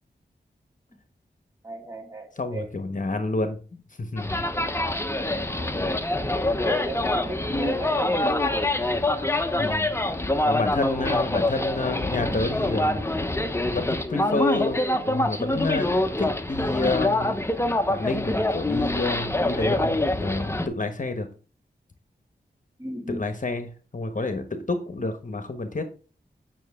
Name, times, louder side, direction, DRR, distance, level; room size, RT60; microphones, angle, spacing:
voice 1, 1.6-2.7 5.2-5.7 6.7-8.7 10.0-10.2 22.8-23.2, equal, 20° right, 0 dB, 3.4 m, -36 dB
voice 2, 2.4-3.6 4.0-4.4 9.5-10.0 10.4-13.0 13.6-17.4 17.9-21.3 23.1-25.8, left 3 dB, 45° left, 7 dB, 1.2 m, -29 dB
sound 1, 4.2-20.7, left 1 dB, 15° left, 1.0 m, -25 dB
9.1 x 6.0 x 3.6 m, 0.37 s
cardioid pair, 50°, 18 cm